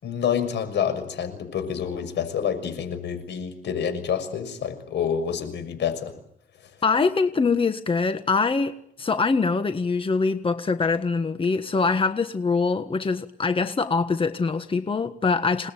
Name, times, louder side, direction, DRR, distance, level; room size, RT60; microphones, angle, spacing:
voice 1, 0.0-6.1 6.6-6.7, left 7 dB, 90° left, 6.4 m, -28 dB
voice 2, 6.8-15.7, left 4 dB, 30° left, 1.5 m, -23 dB
28.0 x 20.0 x 9.2 m
cardioid pair, 115°, 18 cm